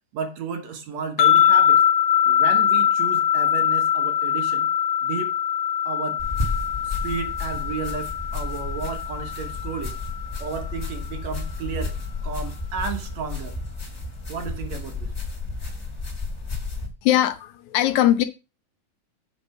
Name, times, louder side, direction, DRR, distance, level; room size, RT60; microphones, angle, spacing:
voice 1, 0.1-1.8 2.2-4.7 5.0-5.3 5.9-6.3 6.8-10.0 10.4-12.0 12.2-13.6 14.3-15.1, right 6 dB, 65° right, 2.3 m, -33 dB
sound 1, 1.2-10.5, left 10 dB, 60° left, 1.4 m, -22 dB
sound 2, 6.2-16.9, left 3 dB, 15° left, 1.4 m, -32 dB
voice 2, 17.0-18.2, left 12 dB, 75° left, 2.0 m, -20 dB
7.9 x 5.0 x 6.8 m
omnidirectional pair, 3.6 m